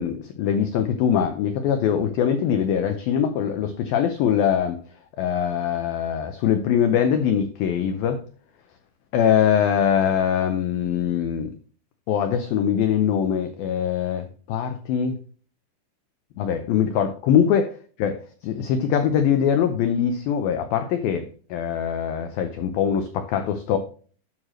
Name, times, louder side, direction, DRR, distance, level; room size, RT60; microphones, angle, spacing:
voice 1, 0.0-4.8 5.2-8.2 9.1-11.5 12.1-15.2 16.4-18.2 18.4-23.8, left 8 dB, 85° left, 7 dB, 2.1 m, -22 dB
11.0 x 6.5 x 3.1 m, 0.42 s
omnidirectional pair, 5.2 m